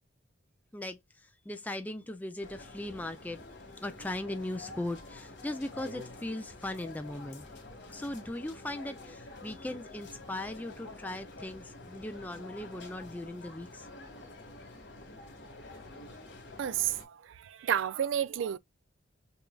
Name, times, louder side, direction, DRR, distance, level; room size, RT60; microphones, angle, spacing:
voice 1, 0.7-3.4 3.8-7.5 7.9-13.9, left 1 dB, 10° left, 0.4 m, -39 dB
sound 1, 2.4-17.0, left 2 dB, 55° left, 1.9 m, -48 dB
voice 2, 16.6-18.6, right 9 dB, 70° right, 0.3 m, -31 dB
6.9 x 2.5 x 2.2 m
head